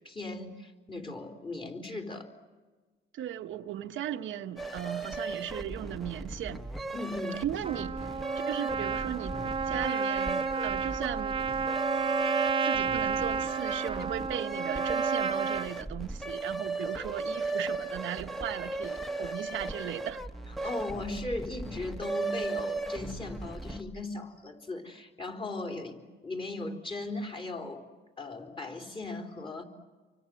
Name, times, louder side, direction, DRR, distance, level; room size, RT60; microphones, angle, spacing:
voice 1, 0.0-2.3 6.9-7.4 20.6-27.8 28.2-29.6, left 2 dB, 25° left, 4 dB, 4.0 m, -38 dB
voice 2, 3.1-6.6 7.4-8.1 8.5-9.4 9.6-11.4 12.6-20.2 20.6-20.7, right 11 dB, 80° right, 6 dB, 1.3 m, -37 dB
sound 1, 4.6-24.0, right 3 dB, ahead, 1.5 m, -36 dB
Trumpet, 7.6-15.7, right 6 dB, 25° right, 1.1 m, -31 dB
29.0 x 24.5 x 7.8 m, 1.4 s
cardioid pair, 90°, 20 cm